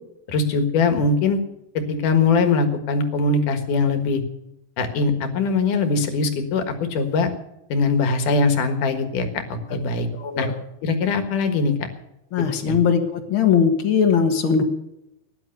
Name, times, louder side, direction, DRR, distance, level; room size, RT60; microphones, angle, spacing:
voice 1, 0.3-1.4 1.7-4.2 4.8-7.3 7.7-10.1 10.4-10.5 10.8-11.9 12.5-12.8, left 4 dB, 75° left, 7 dB, 3.1 m, -21 dB
voice 2, 10.1-10.5 12.3-14.6, left 7 dB, 50° left, 7 dB, 1.9 m, -20 dB
17.5 x 11.0 x 6.6 m, 0.87 s
omnidirectional pair, 3.7 m